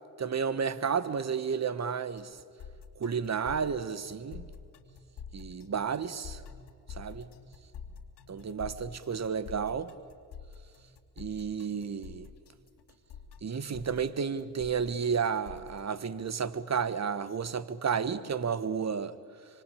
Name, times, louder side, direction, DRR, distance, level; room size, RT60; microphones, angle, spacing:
voice 1, 0.2-2.4 3.0-4.5 5.3-6.4 6.9-7.2 8.3-9.9 11.2-12.3 13.4-19.1, right 6 dB, 40° right, 1.5 m, -32 dB
sound 1, 2.2-15.8, left 6 dB, 75° left, 2.6 m, -47 dB
25.5 x 24.0 x 8.6 m
supercardioid pair, 50°, 42 cm